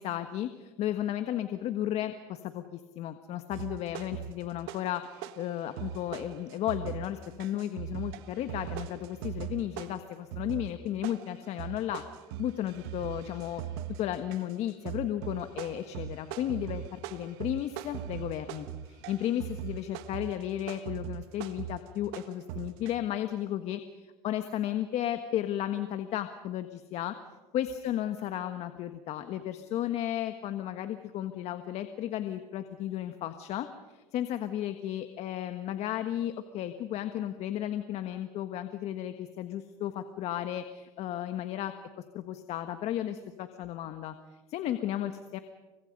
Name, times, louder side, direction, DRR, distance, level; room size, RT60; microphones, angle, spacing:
voice 1, 0.0-12.0 12.4-13.6 14.0-27.1 27.5-44.1 44.5-45.4, left 11 dB, 60° left, 9 dB, 1.5 m, -34 dB
sound 1, 3.5-5.0 5.2-22.9, right 11 dB, 85° right, 1.5 m, -40 dB
29.5 x 24.5 x 5.4 m, 1.2 s
supercardioid pair, 100°, 13 cm